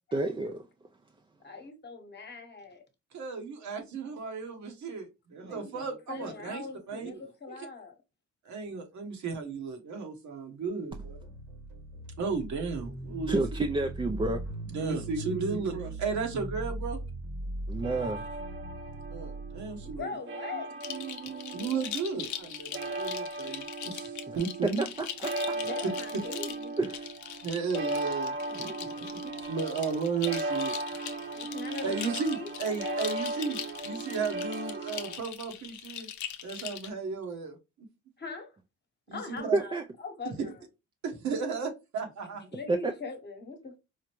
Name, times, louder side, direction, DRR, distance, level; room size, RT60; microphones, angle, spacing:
voice 1, 0.1-0.6 13.3-14.4 17.7-18.2 24.3-24.4 24.8-25.6 26.8-27.1 39.5-39.8 42.7-42.9, right 2 dB, 20° right, 0.3 m, -30 dB
voice 2, 1.4-2.8 5.4-7.9 18.8-18.9 19.8-20.7 25.5-26.7 29.4-29.7 31.3-33.1 34.9-35.1 38.2-38.6 39.1-40.6 42.5-43.8, left 4 dB, 35° left, 1.0 m, -42 dB
voice 3, 3.1-7.5 8.4-11.3 12.2-13.4 14.7-17.0 19.1-20.1 20.5-20.6 20.9-24.8 27.4-30.7 31.8-33.6 33.8-36.1 36.4-37.6 39.1-39.6 41.0-42.5, right 5 dB, 65° right, 1.1 m, -34 dB
sound 1, 10.9-20.0, right 2 dB, 85° right, 2.2 m, -39 dB
sound 2, 17.8-35.2, right 2 dB, 40° right, 0.7 m, -37 dB
sound 3, 20.8-36.9, left 10 dB, 70° left, 0.6 m, -41 dB
4.9 x 2.1 x 3.0 m
cardioid pair, 90°, 30 cm